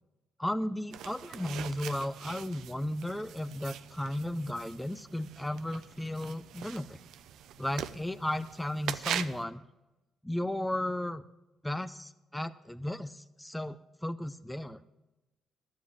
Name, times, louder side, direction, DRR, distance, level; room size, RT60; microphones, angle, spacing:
voice 1, 0.4-7.0 7.6-9.6 10.2-11.2 11.6-15.0, left 1 dB, 5° left, 11 dB, 0.6 m, -35 dB
sound 1, 0.9-9.4, right 10 dB, 80° right, 0.6 m, -42 dB
12.5 x 7.6 x 8.6 m, 1.0 s
cardioid pair, 90°, 0 cm